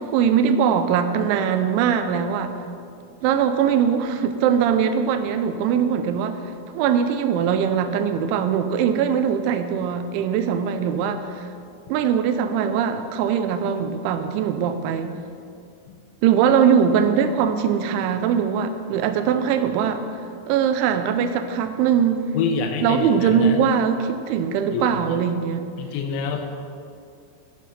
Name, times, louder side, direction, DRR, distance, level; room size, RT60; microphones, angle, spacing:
voice 1, 0.0-2.5 3.2-6.4 6.7-11.5 11.9-15.2 16.2-20.0 20.5-22.3 22.8-25.6, right 7 dB, 85° right, 9 dB, 2.9 m, -21 dB
voice 2, 22.4-23.6 24.7-25.2 25.8-26.4, left 5 dB, 90° left, 4 dB, 3.4 m, -27 dB
9.5 x 7.6 x 5.7 m, 2.4 s
omnidirectional pair, 5.5 m